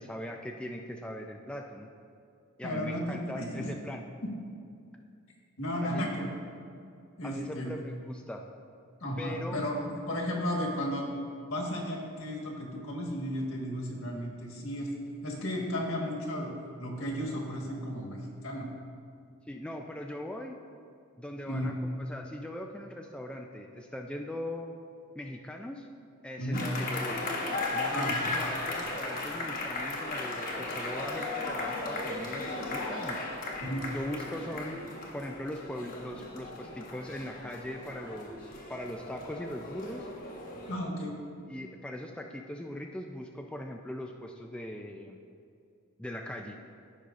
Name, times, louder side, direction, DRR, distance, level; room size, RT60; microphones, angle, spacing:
voice 1, 0.0-1.9 2.6-4.0 5.8-6.1 7.2-8.4 9.2-9.6 19.5-20.6 21.2-24.7 25.2-25.9 26.2-27.2 27.7-33.2 33.9-34.8 35.1-40.1 41.5-45.2 46.0-46.6, left 1 dB, 5° left, 1 dB, 0.3 m, -40 dB
voice 2, 2.6-3.7 5.6-6.3 7.2-7.7 9.0-11.1 11.5-14.9 15.2-18.7 21.5-21.8 26.4-26.6 27.9-28.3 33.6-33.9 40.7-41.1, equal, 70° left, -1 dB, 1.6 m, -34 dB
sound 1, 26.5-40.8, left 2 dB, 40° left, 1.0 m, -36 dB
15.0 x 5.4 x 2.5 m, 2.4 s
head